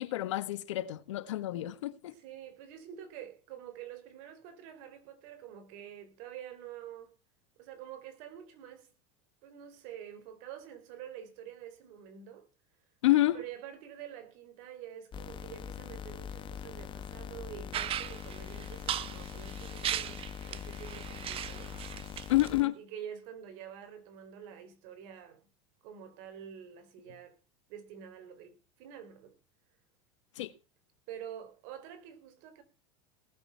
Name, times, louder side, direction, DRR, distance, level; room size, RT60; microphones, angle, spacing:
voice 1, 0.0-2.1 13.0-13.4 22.3-22.8 30.3-30.5, left 16 dB, 80° left, 1.6 m, -28 dB
voice 2, 2.0-7.1 7.6-8.9 9.4-12.5 13.3-21.7 22.8-25.5 25.8-27.4 27.7-29.4 31.1-32.6, right 9 dB, 60° right, 4.5 m, -47 dB
sound 1, 15.1-22.6, left 8 dB, 35° left, 1.5 m, -43 dB
sound 2, 17.7-22.5, right 11 dB, 35° right, 1.0 m, -38 dB
18.5 x 8.1 x 5.8 m
hypercardioid pair, 105°, 15 cm